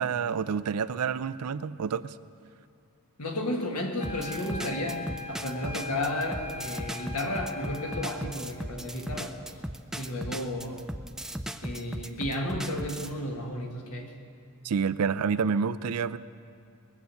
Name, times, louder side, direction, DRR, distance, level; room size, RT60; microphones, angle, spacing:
voice 1, 0.0-2.2 14.6-16.2, right 6 dB, 85° right, 14 dB, 0.4 m, -28 dB
voice 2, 3.2-9.4 10.0-10.8 11.6-14.1, left 1 dB, 80° left, 1 dB, 1.9 m, -33 dB
sound 1, 4.0-8.2, left 3 dB, 40° left, 2.3 m, -41 dB
sound 2, 4.0-13.1, right 1 dB, ahead, 0.3 m, -37 dB
21.0 x 7.9 x 7.0 m, 2.3 s
head